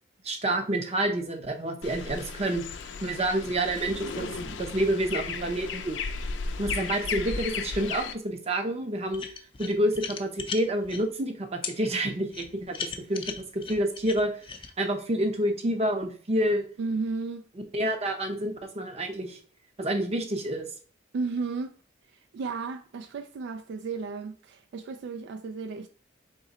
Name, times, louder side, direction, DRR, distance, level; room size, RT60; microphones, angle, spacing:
voice 1, 0.2-2.6 3.0-6.0 6.6-9.2 9.6-14.3 14.8-16.7 17.7-19.4 19.8-20.7, right 1 dB, 35° right, 0.6 m, -28 dB
sound 1, 1.8-8.1, left 5 dB, 80° left, 0.5 m, -35 dB
sound 2, 9.1-11.0 11.6-11.7 12.3-14.7, left 6 dB, 30° left, 0.4 m, -37 dB
voice 2, 16.8-17.5 21.1-21.8 22.1-25.9, right 4 dB, 70° right, 0.3 m, -33 dB
3.8 x 2.9 x 4.0 m
head